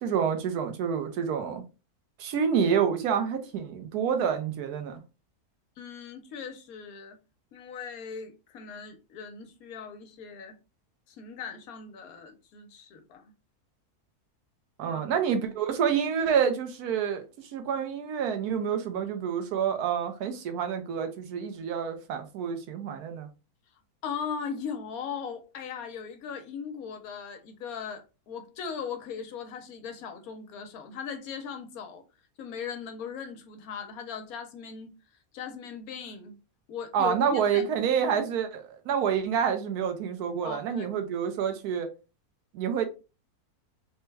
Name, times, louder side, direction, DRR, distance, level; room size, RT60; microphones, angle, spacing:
voice 1, 0.0-1.6 2.2-5.0 14.8-23.3 36.9-41.9 42.5-42.9, right 7 dB, 85° right, 1.2 m, -28 dB
voice 2, 5.8-7.2 7.5-10.6 11.1-13.3 14.9-15.0 24.0-28.0 28.3-32.0 32.4-34.9 35.3-36.3 36.7-37.6 38.0-38.1 40.4-40.9, left 6 dB, 75° left, 1.1 m, -38 dB
3.4 x 2.1 x 3.2 m
omnidirectional pair, 1.6 m